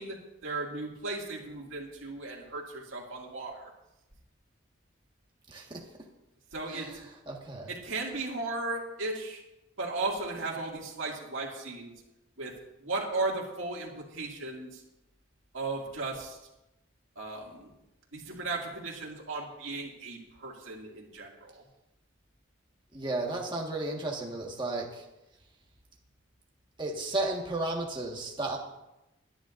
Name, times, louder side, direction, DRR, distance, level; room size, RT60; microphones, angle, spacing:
voice 1, 0.0-3.7 6.5-7.0 7.7-9.4 9.8-11.9 12.4-12.5 12.8-14.8 15.5-16.4 17.2-17.7 18.1-21.6, right 3 dB, 75° right, -2 dB, 2.3 m, -36 dB
voice 2, 5.5-5.8 6.7-7.7 22.9-25.0 26.8-28.6, right 2 dB, 25° right, -1 dB, 1.5 m, -34 dB
22.0 x 10.0 x 2.6 m, 0.95 s
head